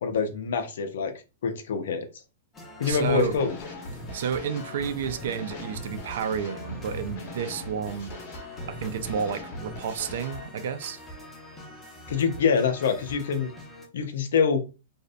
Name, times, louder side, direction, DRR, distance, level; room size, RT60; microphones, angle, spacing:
voice 1, 0.0-1.1 1.4-2.1 2.8-3.5 12.1-13.5 13.9-14.6, left 6 dB, 75° left, 0.5 m, -25 dB
sound 1, 2.5-13.9, equal, 15° left, 0.7 m, -44 dB
voice 2, 2.8-3.4 4.1-8.1 8.7-11.0, right 7 dB, 70° right, 0.3 m, -31 dB
sound 2, 2.9-10.5, left 2 dB, 50° left, 0.9 m, -40 dB
2.5 x 2.1 x 2.5 m
hypercardioid pair, 135°, 0 cm